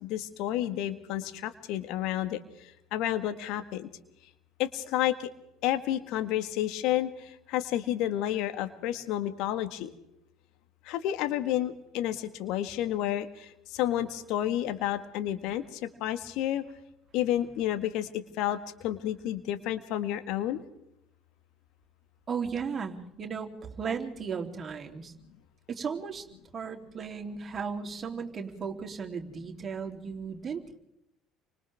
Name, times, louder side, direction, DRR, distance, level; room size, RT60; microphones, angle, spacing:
voice 1, 0.0-2.4 2.9-3.9 4.6-5.3 5.6-7.1 7.5-9.9 10.9-15.6 16.0-16.6 17.1-18.1 18.4-18.6 18.8-20.6, left 12 dB, 60° left, 10 dB, 1.6 m, -30 dB
voice 2, 22.3-25.1 25.7-26.2 26.5-30.8, right 6 dB, 35° right, 3 dB, 3.3 m, -35 dB
29.5 x 25.0 x 3.6 m, 0.82 s
figure-of-eight pair, 60°, 0 cm